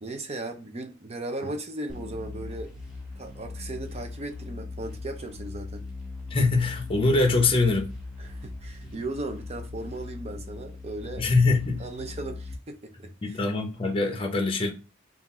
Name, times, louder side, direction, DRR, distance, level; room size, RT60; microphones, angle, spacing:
voice 1, 0.0-2.7 3.2-5.8 8.2-11.2 11.8-13.4, right 2 dB, 35° right, 0.5 m, -37 dB
sound 1, 1.9-12.6, left 3 dB, ahead, 1.6 m, -39 dB
voice 2, 6.3-7.9 11.2-11.9 13.2-14.7, left 3 dB, 30° left, 0.6 m, -23 dB
3.8 x 2.4 x 4.1 m
head